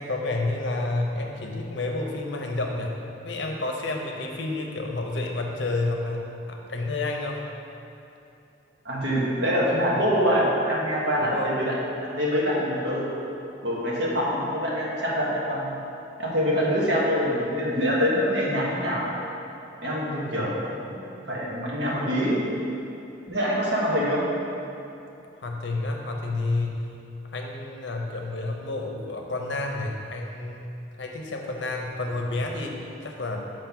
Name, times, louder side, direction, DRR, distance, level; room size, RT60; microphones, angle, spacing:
voice 1, 0.0-3.0 3.2-6.2 6.5-7.4 11.2-11.5 20.3-20.5 25.4-26.8 27.3-30.7 31.0-32.7 33.0-33.5, left 2 dB, 75° left, 1 dB, 0.7 m, -30 dB
voice 2, 8.8-11.7 12.0-13.1 13.6-15.8 16.2-19.1 19.8-22.4 23.3-24.2, equal, 65° right, -5 dB, 1.2 m, -25 dB
5.0 x 3.9 x 5.8 m, 2.8 s
head